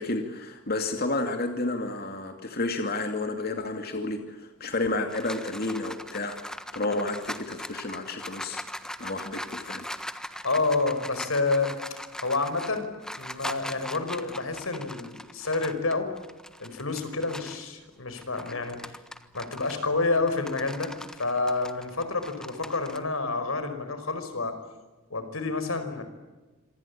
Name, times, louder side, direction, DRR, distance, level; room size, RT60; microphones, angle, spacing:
voice 1, 0.0-8.6 9.0-9.8, left 2 dB, 50° left, 5 dB, 2.5 m, -31 dB
sound 1, 4.7-17.6 18.1-23.0, left 1 dB, 5° left, 1.4 m, -40 dB
voice 2, 10.4-11.8 12.2-12.9 13.2-16.1 16.6-18.8 19.3-20.9 21.2-24.6 25.1-26.0, left 3 dB, 90° left, 9 dB, 5.2 m, -28 dB
27.5 x 25.0 x 8.6 m, 1.2 s
head